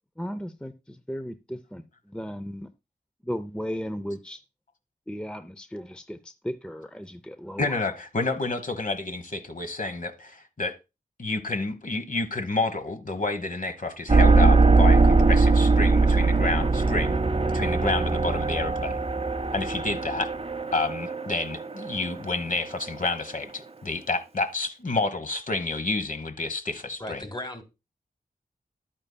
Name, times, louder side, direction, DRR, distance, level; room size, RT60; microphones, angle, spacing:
voice 1, 0.2-2.7 3.2-4.4 5.1-7.8, equal, 5° left, 0.5 m, -36 dB
voice 2, 7.6-10.7 11.2-17.2 17.5-19.0 19.5-20.3 20.7-27.2, left 3 dB, 50° left, 1.1 m, -29 dB
sound 1, 14.1-23.2, right 3 dB, 35° right, 0.8 m, -21 dB
voice 3, 27.0-27.6, left 1 dB, 25° left, 1.8 m, -36 dB
11.0 x 8.8 x 2.2 m
wide cardioid pair, 65°, 17 cm